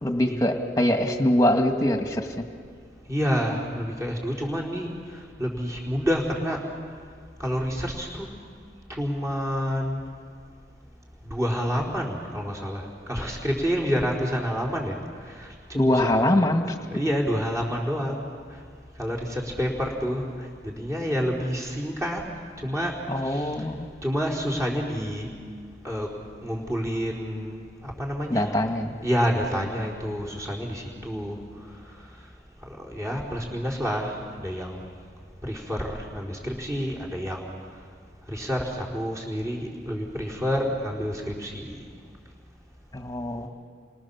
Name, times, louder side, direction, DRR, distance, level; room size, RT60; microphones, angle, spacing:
voice 1, 0.0-2.5 15.7-16.7 23.1-23.9 28.3-29.0 42.9-43.5, left 1 dB, 20° left, 4 dB, 2.0 m, -23 dB
voice 2, 3.1-4.9 5.4-6.6 7.4-8.3 8.9-10.0 11.2-14.9 15.4-16.3 16.9-18.2 19.0-20.3 20.6-22.2 22.6-22.9 23.2-23.5 24.0-25.3 25.8-26.1 26.4-28.5 29.0-31.4 32.9-34.8 35.4-37.4 38.3-41.8, equal, 15° right, -2 dB, 4.4 m, -28 dB
29.5 x 25.5 x 7.3 m, 2.1 s
head